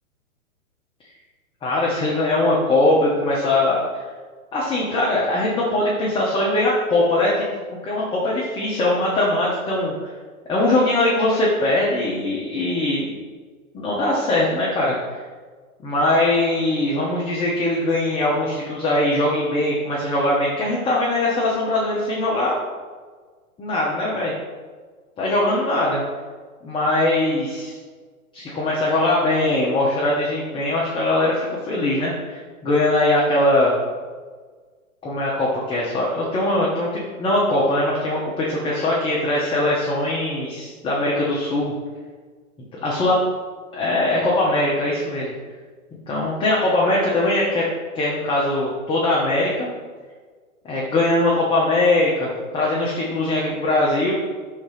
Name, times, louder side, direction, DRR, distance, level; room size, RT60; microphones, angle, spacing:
voice 1, 1.6-4.0 4.5-7.4 7.8-10.1 10.5-13.1 13.7-15.2 15.8-22.6 23.6-24.3 25.2-26.0 26.6-27.7 28.3-33.8 35.0-36.9 37.2-41.7 42.8-43.2 43.7-45.3 46.1-47.7 47.9-49.7 50.6-54.1, left 2 dB, 10° left, -5 dB, 0.7 m, -21 dB
5.4 x 3.7 x 5.0 m, 1.5 s
hypercardioid pair, 125°, 42 cm